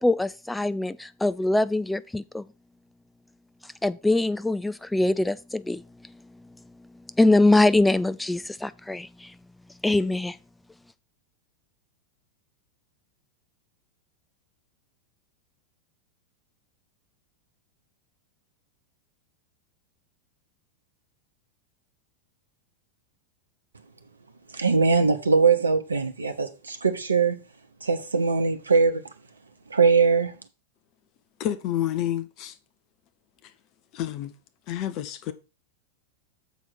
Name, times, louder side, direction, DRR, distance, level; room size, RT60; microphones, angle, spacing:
voice 1, 0.0-2.4 3.8-5.8 7.2-9.3 9.8-10.4, left 2 dB, 5° left, 0.3 m, -23 dB
voice 2, 24.5-27.4 27.8-29.1 29.7-30.4, right 5 dB, 75° right, 0.8 m, -21 dB
voice 3, 31.4-32.6 33.4-33.5 33.9-34.3 34.7-35.3, left 11 dB, 40° left, 0.7 m, -29 dB
7.2 x 4.4 x 6.0 m
figure-of-eight pair, 90°, 0 cm